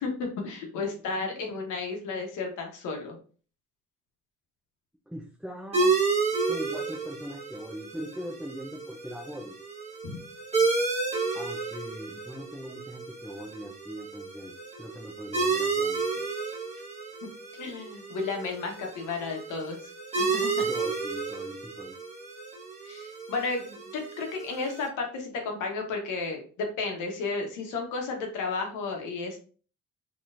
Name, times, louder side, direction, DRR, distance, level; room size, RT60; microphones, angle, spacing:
voice 1, 0.0-3.1 10.0-10.2 17.6-19.8 20.2-20.5 22.8-29.4, left 4 dB, 85° left, 2 dB, 1.0 m, -33 dB
voice 2, 5.1-5.9 6.5-9.6 11.3-16.3 20.6-22.0, equal, ahead, -1 dB, 0.6 m, -41 dB
sound 1, 5.7-24.9, right 4 dB, 20° right, 1.3 m, -31 dB
3.9 x 3.0 x 2.6 m, 0.40 s
cardioid pair, 90°, 30 cm